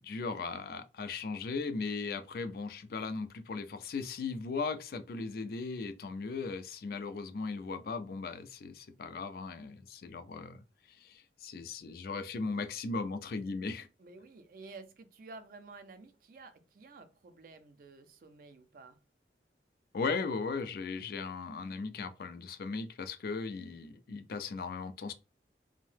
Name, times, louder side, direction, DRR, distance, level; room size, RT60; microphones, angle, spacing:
voice 1, 0.0-13.9 19.9-25.1, left 4 dB, 55° left, 0.3 m, -37 dB
voice 2, 14.0-19.0, right 3 dB, 50° right, 0.4 m, -52 dB
2.7 x 2.0 x 3.2 m
head